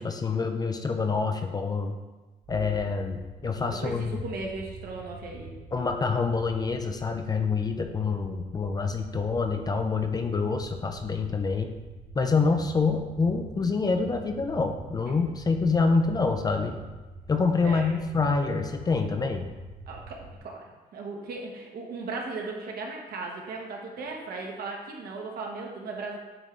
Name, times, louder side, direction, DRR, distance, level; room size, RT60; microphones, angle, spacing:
voice 1, 0.0-1.9 2.5-4.2 5.7-11.7 12.1-16.8 17.3-19.5, left 4 dB, 25° left, 6 dB, 0.4 m, -26 dB
sound 1, 2.4-20.4, right 2 dB, 50° right, 1.1 m, -45 dB
voice 2, 3.8-5.5 15.1-15.2 17.6-18.0 19.9-26.2, right 3 dB, 70° right, 0 dB, 1.1 m, -37 dB
8.9 x 3.3 x 3.7 m, 1.2 s
cardioid pair, 160°, 16 cm